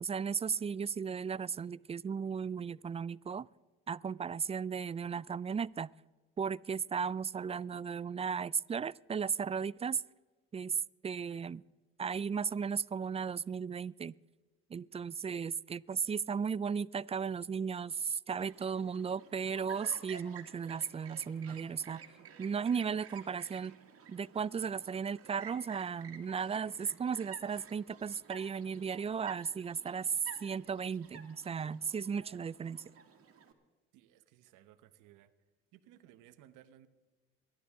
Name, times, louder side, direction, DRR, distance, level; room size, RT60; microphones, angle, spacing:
voice 1, 0.0-3.5 3.9-5.9 6.4-10.0 10.5-10.8 11.0-11.6 12.0-14.1 14.7-22.0 22.4-23.7 24.1-30.1 30.4-32.8, right 6 dB, 20° right, 22 dB, 0.3 m, -35 dB
Chirp tweet, 18.4-33.5, right 7 dB, 50° right, 2.0 m, -53 dB
voice 2, 33.9-35.3 35.7-36.9, right 12 dB, 80° right, 11 dB, 1.1 m, -60 dB
23.0 x 11.5 x 3.6 m, 1.3 s
supercardioid pair, 70°, 30 cm